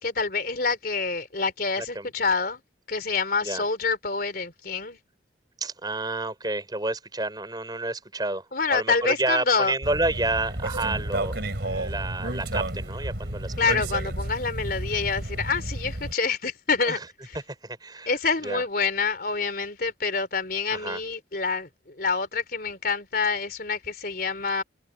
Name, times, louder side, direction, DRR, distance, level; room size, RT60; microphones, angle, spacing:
voice 1, 0.0-2.6 2.9-5.0 8.5-9.7 13.6-17.4 18.1-24.6, left 4 dB, 50° left, 3.8 m, -27 dB
voice 2, 1.8-2.1 3.4-3.6 5.6-8.5 8.7-11.4 11.6-13.5 16.9-17.1 17.5-18.1 18.4-18.6 20.7-21.0, right 2 dB, 20° right, 5.7 m, -30 dB
sound 1, 9.8-16.1, right 1 dB, 65° right, 3.3 m, -31 dB
head